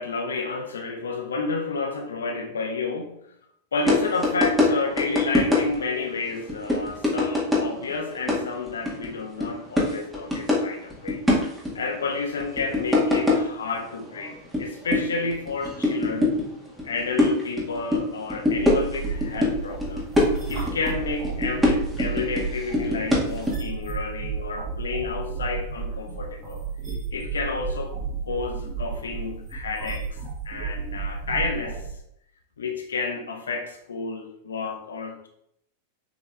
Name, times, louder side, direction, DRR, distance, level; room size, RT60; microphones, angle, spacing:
voice 1, 0.0-3.2 3.7-11.2 11.7-16.4 16.8-20.1 20.5-26.6 27.1-27.9 28.2-30.2 30.4-31.8 32.6-35.3, left 4 dB, 70° left, 4 dB, 1.0 m, -30 dB
sound 1, 3.9-4.0 4.2-4.7 5.0-6.0 6.3-7.9 8.2-9.1 9.4-9.5 9.8-10.6 10.9-11.7 12.4-13.6 14.1-14.6 14.9-16.5 16.8-18.0 18.3-19.5 19.8-20.9 21.2-22.5 22.7-23.5, left 2 dB, 5° right, 1.8 m, -22 dB
sound 2, 18.5-31.9, right 6 dB, 35° right, 2.0 m, -32 dB
7.3 x 4.0 x 3.2 m, 0.74 s
figure-of-eight pair, 90°, 0 cm